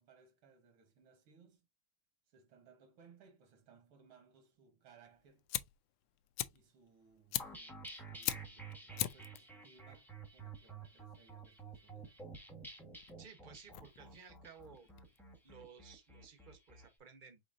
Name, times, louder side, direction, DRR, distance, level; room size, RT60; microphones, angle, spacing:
voice 1, 0.0-1.7 2.3-5.5 6.5-12.2, right 5 dB, 85° right, 2.1 m, -64 dB
Fire, 5.1-15.5, left 14 dB, 75° left, 1.2 m, -44 dB
sound 1, 7.4-16.9, right 4 dB, ahead, 0.8 m, -51 dB
voice 2, 13.2-14.9 15.4-17.4, right 6 dB, 40° right, 0.7 m, -57 dB
5.0 x 4.0 x 2.5 m
omnidirectional pair, 2.2 m